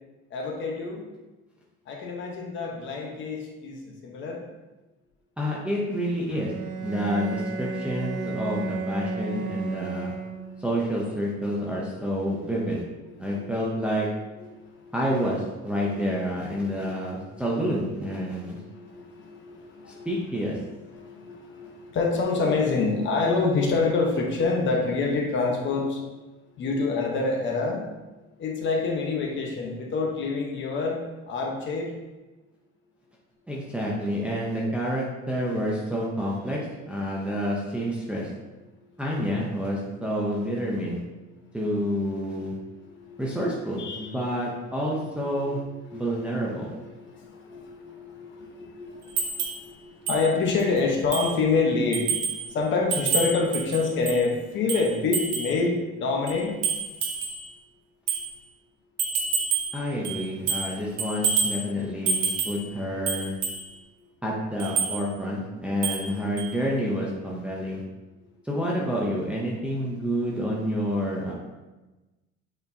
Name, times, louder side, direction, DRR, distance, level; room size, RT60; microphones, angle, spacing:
voice 1, 0.3-1.0 1.9-4.4 10.6-10.7 13.1-13.5 14.4-14.9 15.8-16.3 16.6-17.8 18.2-20.1 20.9-26.0 26.6-27.9 28.4-31.0 31.3-31.9 43.0-43.5 43.8-44.5 44.8-45.1 45.9-46.3 46.8-56.6 64.0-64.1, left 4 dB, 40° left, 0 dB, 0.9 m, -27 dB
voice 2, 5.4-6.5 6.8-10.1 10.6-12.8 13.2-14.1 14.9-18.6 19.9-20.6 33.5-36.6 36.9-38.3 39.0-41.0 41.5-42.6 43.2-45.6 45.9-46.8 59.7-63.4 64.2-67.8 68.4-71.3, equal, 5° right, -4 dB, 0.6 m, -28 dB
Bowed string instrument, 6.3-10.7, right 3 dB, 45° right, 1.8 m, -33 dB
sound 1, 49.2-49.6 50.1-50.2 50.6-50.7 51.1-51.4 51.9-52.4 52.9-54.2 54.7-55.6 56.3-57.4 58.1-58.3 59.0-59.8 60.0-60.7 61.0-61.6 62.1-62.6 63.1-63.6 64.6-65.0 65.8-66.1 66.4-66.5, right 5 dB, 80° right, 1.5 m, -27 dB
7.8 x 4.4 x 2.7 m, 1.1 s
cardioid pair, 175°, 30 cm